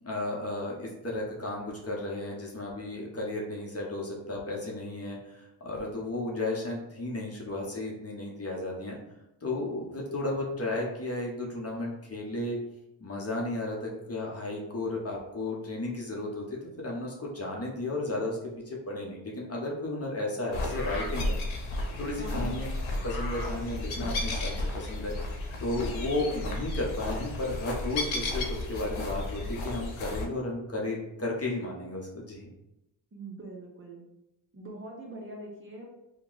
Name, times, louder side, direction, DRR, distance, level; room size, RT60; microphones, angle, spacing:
voice 1, 0.0-9.0 9.4-12.6 13.0-18.4 18.7-21.4 22.0-22.7 23.0-25.1 25.6-32.5, left 2 dB, 30° left, -2 dB, 0.8 m, -34 dB
sound 1, 20.5-30.3, left 2 dB, 80° left, 0.8 m, -33 dB
voice 2, 22.2-22.5 33.1-34.0 34.5-35.9, right 2 dB, 25° right, -2 dB, 0.7 m, -42 dB
2.8 x 2.2 x 3.8 m, 0.90 s
cardioid pair, 85°, 47 cm